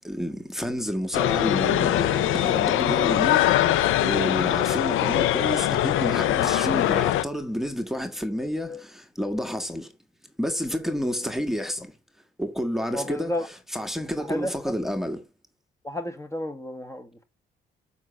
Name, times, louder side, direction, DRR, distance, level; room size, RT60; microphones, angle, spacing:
voice 1, 0.0-3.4 4.0-9.9 10.4-11.9 12.4-13.4 13.7-15.2, equal, ahead, 1.7 m, -30 dB
sound 1, 1.1-7.2, left 13 dB, 85° left, 0.7 m, -22 dB
voice 2, 12.9-13.5 14.2-14.7 15.8-17.2, left 1 dB, 15° left, 1.7 m, -32 dB
7.5 x 5.7 x 7.4 m
cardioid pair, 90°, 20 cm